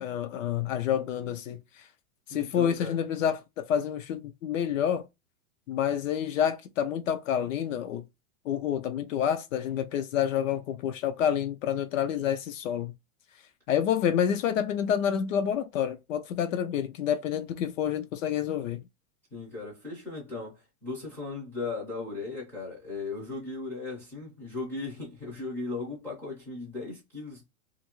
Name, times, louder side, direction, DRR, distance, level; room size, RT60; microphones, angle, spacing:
voice 1, 0.0-1.8 2.3-5.1 5.7-8.0 8.5-12.9 13.7-18.8, left 9 dB, 60° left, 0.5 m, -28 dB
voice 2, 2.3-3.0 19.3-27.5, left 3 dB, 5° left, 0.4 m, -37 dB
2.6 x 2.5 x 2.8 m
supercardioid pair, 160°, 44 cm